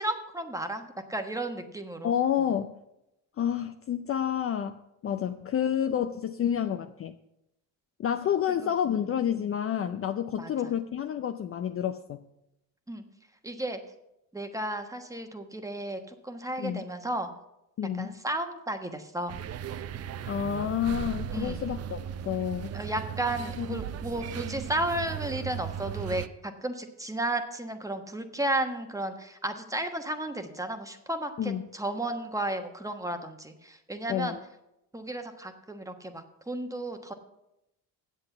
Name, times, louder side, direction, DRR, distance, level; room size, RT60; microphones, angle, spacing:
voice 1, 0.0-2.1 8.6-9.0 10.4-10.5 12.9-13.0 13.4-13.8 14.3-17.3 18.0-19.4 21.3-21.6 22.7-34.4 34.9-37.1, right 1 dB, 10° right, 6 dB, 1.2 m, -33 dB
voice 2, 2.0-2.8 3.4-7.2 8.0-12.2 16.6-16.8 17.8-18.2 20.3-22.7 23.6-23.8 31.4-31.6 34.1-34.4, left 9 dB, 35° left, 7 dB, 0.5 m, -29 dB
sound 1, 19.3-26.3, right 8 dB, 40° right, 0.5 m, -37 dB
8.1 x 7.8 x 6.8 m, 0.87 s
supercardioid pair, 85°, 40 cm